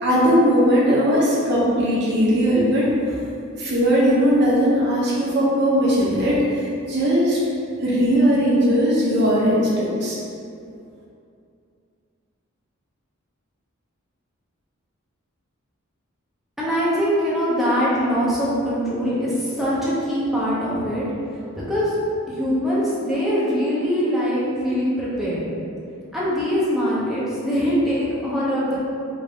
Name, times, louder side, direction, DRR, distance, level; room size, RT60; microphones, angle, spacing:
voice 1, 0.0-3.2 3.6-7.4 7.8-10.2, equal, 55° right, -6 dB, 0.9 m, -19 dB
voice 2, 16.6-21.1 21.6-22.0 22.3-25.4 26.1-28.8, equal, ahead, -9 dB, 0.6 m, -22 dB
3.4 x 2.6 x 3.4 m, 2.5 s
head